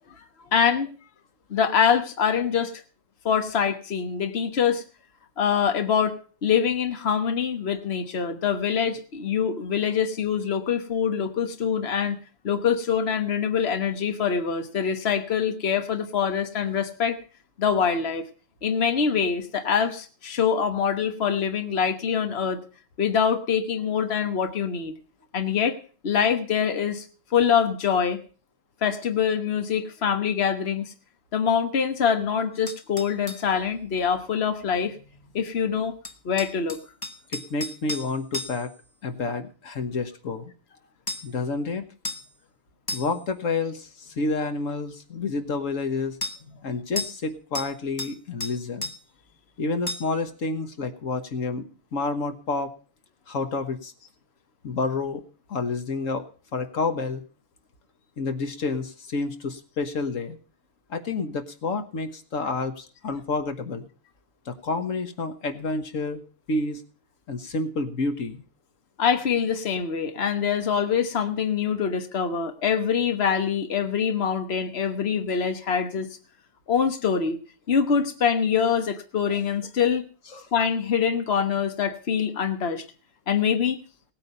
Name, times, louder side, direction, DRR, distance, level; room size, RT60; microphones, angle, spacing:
voice 1, 0.5-0.9 1.5-2.8 3.2-4.8 5.4-12.2 12.4-17.2 17.6-18.2 18.6-22.6 23.0-24.9 25.3-25.8 26.0-27.0 27.3-28.2 28.8-30.9 31.3-35.0 35.3-35.9 36.2-36.8 69.0-76.1 76.7-77.4 77.7-80.1 80.5-82.8 83.3-83.8, left 7 dB, 55° left, 7 dB, 1.5 m, -24 dB
sound 1, 32.7-33.5 36.0-38.8 41.1-41.4 42.0-42.3 42.9-43.3 46.2-46.4 47.0-47.3 47.5-48.2 48.4-49.0 49.9-50.2, left 1 dB, 20° left, 1.0 m, -34 dB
voice 2, 37.3-38.7 39.0-40.5 41.2-41.9 42.9-46.2 46.6-48.9 49.6-52.7 53.3-53.9 54.6-55.2 55.5-56.2 56.5-57.2 58.2-60.4 60.9-63.9 64.4-66.2 66.5-66.8 67.3-68.4 80.3-80.5, left 3 dB, 75° left, 8 dB, 1.7 m, -29 dB
18.0 x 9.1 x 5.5 m, 0.39 s
omnidirectional pair, 1.4 m